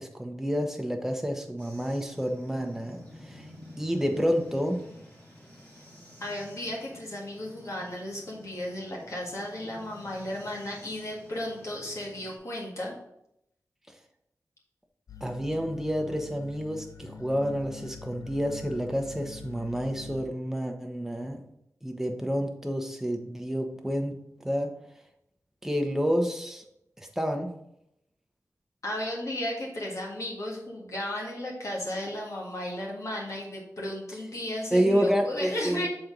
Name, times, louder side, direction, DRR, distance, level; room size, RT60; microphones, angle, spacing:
voice 1, 0.0-3.5 3.8-4.8 15.2-21.4 21.8-24.2 24.4-24.7 25.6-26.6 27.0-27.5 34.7-35.9, equal, 5° right, 3 dB, 1.0 m, -29 dB
sound 1, 1.6-12.4, left 1 dB, 35° left, 2.7 m, -51 dB
voice 2, 6.2-13.0 28.8-35.9, left 1 dB, 65° left, -3 dB, 1.8 m, -34 dB
sound 2, 15.1-20.2, left 5 dB, 80° left, 0.5 m, -45 dB
7.5 x 4.3 x 3.9 m, 0.78 s
wide cardioid pair, 85°, 6 cm